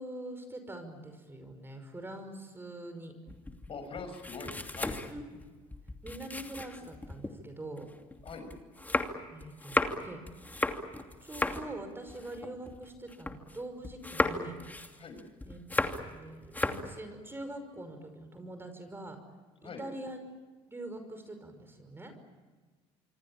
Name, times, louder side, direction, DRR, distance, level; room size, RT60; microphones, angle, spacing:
voice 1, 0.0-3.1 5.1-5.5 6.0-7.9 9.3-10.2 11.2-14.6 15.5-15.6 16.0-19.2 19.6-20.2 20.7-22.1, right 1 dB, 15° right, 8 dB, 5.6 m, -44 dB
sound 1, 3.3-7.3 7.8-13.6 13.8-16.2 16.4-16.9, left 2 dB, 10° left, 2.7 m, -35 dB
voice 2, 3.7-5.0 8.2-8.5 15.0-15.2 19.6-19.9, left 4 dB, 40° left, 8 dB, 5.8 m, -43 dB
27.0 x 24.0 x 8.8 m, 1.3 s
supercardioid pair, 85°, 14 cm